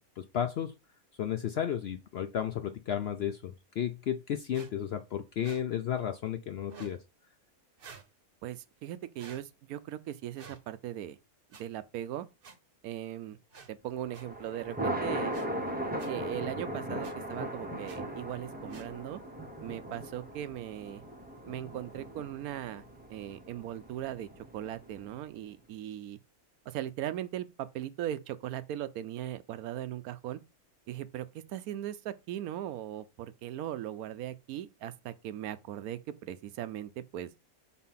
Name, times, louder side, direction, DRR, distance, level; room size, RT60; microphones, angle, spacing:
voice 1, 0.2-0.7 1.2-7.0, left 9 dB, 65° left, 0.6 m, -33 dB
sound 1, 4.5-4.7 5.4-5.6 6.6-7.0 7.8-8.1 9.2-9.4 10.3-10.6 11.5-11.6 12.4-12.5 13.5-13.7 14.1-14.2 15.3-15.5 16.0-16.1 17.0-17.1 17.8-18.0 18.7-18.9, right 5 dB, 45° right, 0.9 m, -50 dB
voice 2, 8.4-11.2 11.6-12.3 12.8-13.4 13.7-15.3 16.0-19.2 19.6-21.0 21.5-22.8 23.1-26.2 26.7-30.4 30.9-37.3, right 12 dB, 80° right, 1.0 m, -39 dB
Thunder, 13.9-25.3, right 1 dB, 10° right, 0.6 m, -38 dB
4.3 x 4.2 x 5.5 m
omnidirectional pair, 1.5 m